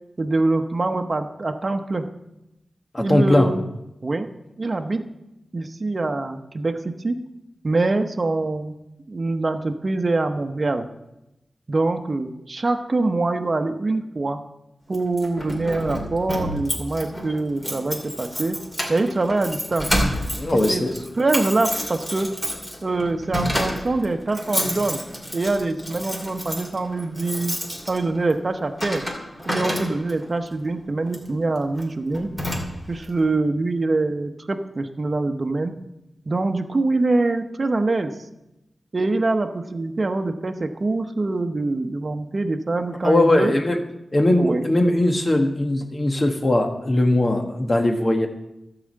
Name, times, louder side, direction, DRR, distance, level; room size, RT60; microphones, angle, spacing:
voice 1, 0.2-2.0 3.0-3.6 4.0-4.3 4.6-5.1 5.5-7.2 7.6-8.7 9.1-10.9 11.7-14.4 14.9-18.6 18.9-20.0 20.5-20.8 21.2-22.3 22.8-25.0 25.3-27.5 27.9-29.0 29.5-32.3 32.9-35.7 36.3-38.1 38.9-43.5 44.3-44.7, right 2 dB, 45° right, 6 dB, 0.9 m, -24 dB
voice 2, 2.9-3.5 20.4-20.9 43.0-43.8 44.1-48.3, left 1 dB, 35° left, 4 dB, 1.6 m, -19 dB
Keys jangling, 14.9-30.3 31.1-31.3 31.8-31.9 32.1-33.0, equal, 15° left, 2.8 m, -30 dB
12.5 x 5.0 x 7.6 m, 0.91 s
cardioid pair, 65°, 0 cm